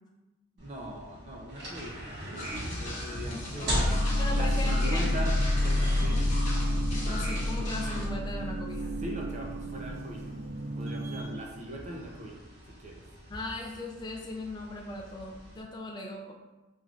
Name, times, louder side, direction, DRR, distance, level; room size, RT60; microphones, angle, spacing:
voice 1, 0.6-6.3 9.0-10.4 10.7-12.4 12.8-13.0, right 1 dB, 35° right, 0 dB, 0.6 m, -40 dB
sound 1, 0.6-15.6, equal, 50° right, 1.3 m, -42 dB
sound 2, 2.3-8.1, left 1 dB, 35° left, 0.9 m, -37 dB
sound 3, 3.7-11.4, left 1 dB, 80° right, 0.4 m, -29 dB
voice 2, 4.2-5.2 6.1-6.3 7.1-9.0 13.3-16.3, left 2 dB, 20° left, -1 dB, 0.3 m, -38 dB
5.0 x 3.1 x 2.4 m, 1.1 s
head